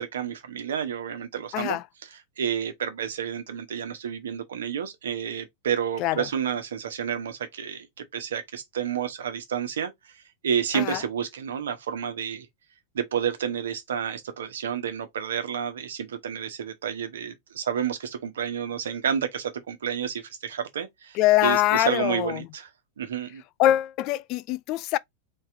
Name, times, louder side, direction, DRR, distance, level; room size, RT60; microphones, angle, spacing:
voice 1, 0.0-12.5 12.9-22.7 23.0-23.4, right 8 dB, 65° right, 1.1 m, -30 dB
voice 2, 1.5-1.8 6.0-6.2 10.7-11.0 21.2-22.4 23.6-25.0, left 15 dB, 40° left, 0.3 m, -23 dB
4.3 x 3.2 x 3.6 m
figure-of-eight pair, 90°, 0 cm